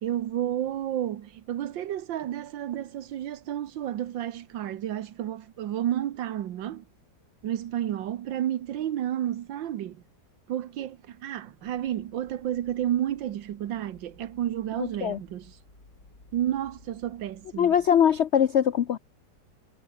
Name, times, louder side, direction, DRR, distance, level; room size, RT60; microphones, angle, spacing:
voice 1, 0.0-6.8 7.4-10.0 10.5-15.6 16.3-17.7, right 11 dB, 85° right, 1.7 m, -31 dB
sound 1, 11.6-18.2, left 2 dB, 50° left, 6.0 m, -57 dB
voice 2, 14.8-15.2 17.6-19.0, left 9 dB, 75° left, 0.6 m, -22 dB
omnidirectional pair, 2.0 m